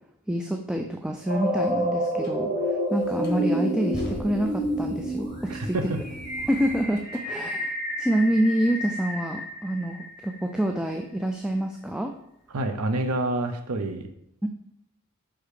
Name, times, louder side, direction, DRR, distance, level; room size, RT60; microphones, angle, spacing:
voice 1, 0.3-5.9 6.5-12.1 14.4-14.5, right 1 dB, 5° right, 3 dB, 0.3 m, -27 dB
sound 1, 1.3-10.2, equal, 35° right, 2.3 m, -29 dB
sound 2, 2.2-2.4 3.0-7.3, left 1 dB, 45° left, 1.3 m, -42 dB
voice 2, 5.5-6.0 12.5-14.0, right 2 dB, 80° right, 8 dB, 0.7 m, -27 dB
5.5 x 4.9 x 4.9 m, 0.76 s
head